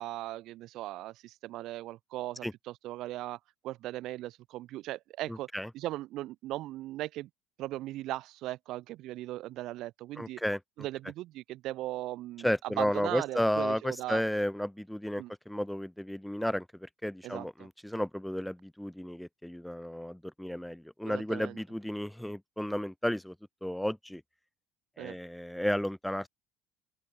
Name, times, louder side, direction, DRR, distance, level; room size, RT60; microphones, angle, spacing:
voice 1, 0.0-3.4 3.6-5.5 5.7-7.3 7.6-10.4 10.8-14.2 15.2-15.3 17.2-17.7 21.0-21.6 25.0-25.2, right 16 dB, 65° right, 2.6 m, -38 dB
voice 2, 5.3-5.7 10.2-10.6 12.4-23.3 23.6-24.2 25.0-26.3, equal, 5° left, 5.1 m, -33 dB
open air
supercardioid pair, 95°, 0 cm